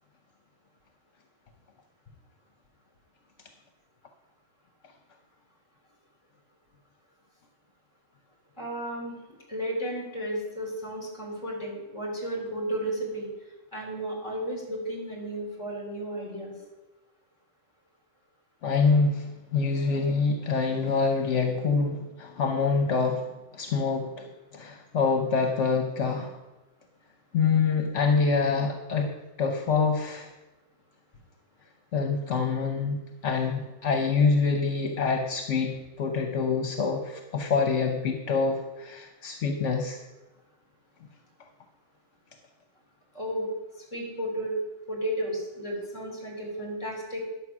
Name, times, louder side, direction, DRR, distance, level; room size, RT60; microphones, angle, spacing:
voice 1, 8.6-9.2 9.5-13.3 13.7-16.5 43.1-43.5 43.9-44.5 44.9-47.2, right 1 dB, 25° left, -1 dB, 3.4 m, -33 dB
voice 2, 18.6-23.3 23.5-24.2 24.5-26.3 27.3-29.1 29.4-30.3 31.9-40.0, left 4 dB, 70° left, 4 dB, 1.2 m, -26 dB
10.5 x 7.1 x 6.0 m, 1.1 s
omnidirectional pair, 1.3 m